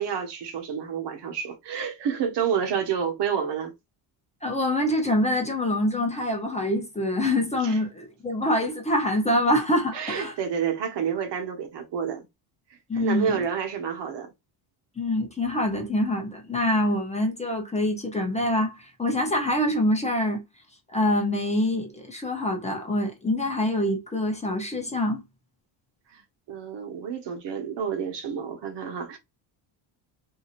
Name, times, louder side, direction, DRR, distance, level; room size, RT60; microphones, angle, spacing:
voice 1, 0.0-3.7 7.6-7.8 9.9-12.2 12.9-14.3 26.1-26.2 26.5-29.2, right 7 dB, 60° right, 1.1 m, -29 dB
voice 2, 4.4-10.3 12.9-13.5 15.0-20.4 20.9-25.2, left 1 dB, 15° left, 0.8 m, -25 dB
2.8 x 2.7 x 2.5 m
cardioid pair, 120°, 49 cm